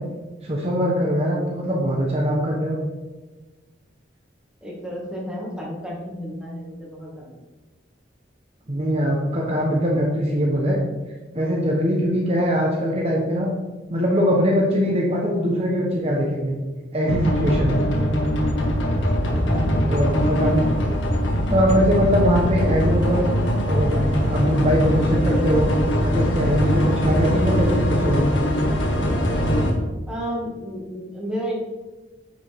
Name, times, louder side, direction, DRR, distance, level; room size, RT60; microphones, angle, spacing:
voice 1, 0.4-2.8 8.7-10.8 11.3-13.5 13.9-16.5 16.9-17.8 19.9-20.6 21.5-23.2 23.7-25.7 26.0-28.2, equal, 35° right, -2 dB, 1.2 m, -22 dB
voice 2, 4.6-7.3 19.4-20.2 30.1-31.5, equal, 5° right, -5 dB, 2.2 m, -32 dB
sound 1, 17.1-29.7, equal, 85° left, 1.7 m, -21 dB
9.3 x 6.3 x 3.6 m, 1.2 s
head